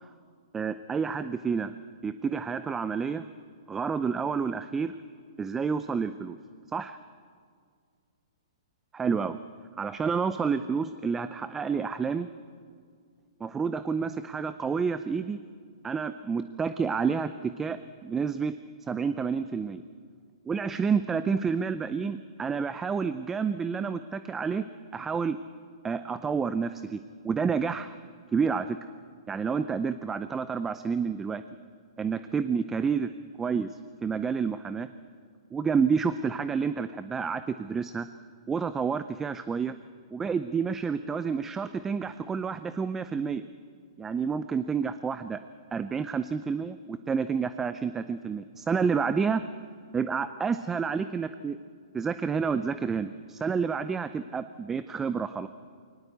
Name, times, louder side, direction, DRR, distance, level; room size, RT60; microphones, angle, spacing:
voice 1, 0.5-1.8 2.0-3.3 3.7-5.0 5.4-6.4 6.7-7.0 8.9-9.4 9.8-12.3 13.4-15.4 15.8-18.6 18.9-19.8 20.5-24.7 24.9-25.4 25.8-28.0 28.3-28.8 29.3-31.4 32.0-33.1 33.4-33.7 34.0-34.9 35.5-38.1 38.5-39.7 40.1-43.4 44.0-45.4 45.7-49.4 49.9-51.6 51.9-55.5, right 5 dB, 10° right, 12 dB, 0.5 m, -29 dB
23.0 x 18.5 x 8.1 m, 2.1 s
hypercardioid pair, 145°, 3 cm